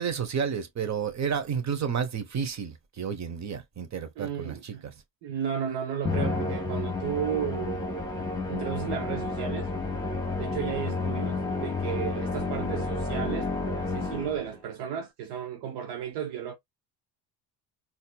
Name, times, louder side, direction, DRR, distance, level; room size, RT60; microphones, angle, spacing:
voice 1, 0.0-4.9, right 7 dB, 40° right, 1.2 m, -31 dB
voice 2, 4.2-4.8 5.2-8.1 8.5-9.7 10.4-16.6, right 8 dB, 65° right, 0.8 m, -34 dB
Musical instrument, 6.0-14.6, left 3 dB, 10° left, 1.6 m, -31 dB
4.2 x 2.8 x 2.3 m
hypercardioid pair, 65°, 44 cm